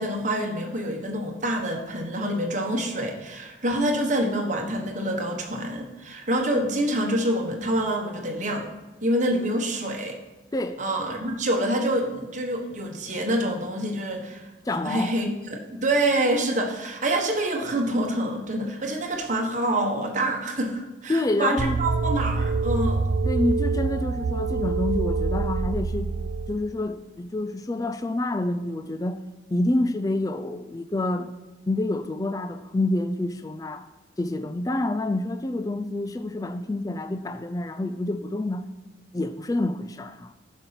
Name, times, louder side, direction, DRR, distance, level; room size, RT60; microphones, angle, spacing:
voice 1, 0.0-8.7 9.0-10.2 10.8-14.5 14.8-23.0, right 1 dB, 40° right, 1 dB, 1.3 m, -26 dB
voice 2, 14.7-15.2 21.1-21.8 23.2-26.1 26.5-29.2 29.5-31.3 31.7-33.9 34.2-38.7 39.1-40.3, left 2 dB, 20° left, 10 dB, 0.3 m, -27 dB
sound 1, 21.6-26.6, right 4 dB, 55° right, 0.4 m, -26 dB
11.0 x 5.4 x 5.8 m, 1.1 s
head